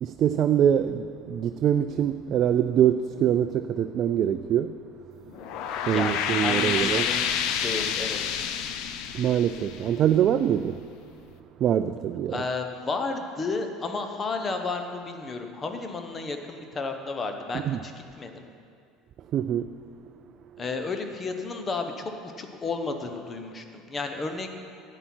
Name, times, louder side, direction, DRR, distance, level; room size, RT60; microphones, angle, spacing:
voice 1, 0.0-4.8 5.9-7.1 9.1-10.8 11.6-12.4 17.5-17.8 19.3-19.8, right 9 dB, 45° right, 9 dB, 0.3 m, -24 dB
sound 1, 5.3-10.6, left 8 dB, 65° left, 0.6 m, -29 dB
voice 2, 5.8-8.2 12.3-17.9 18.2-18.4 20.6-24.6, left 3 dB, 25° left, 5 dB, 1.0 m, -32 dB
11.0 x 8.9 x 4.5 m, 2.3 s
supercardioid pair, 115°, 0 cm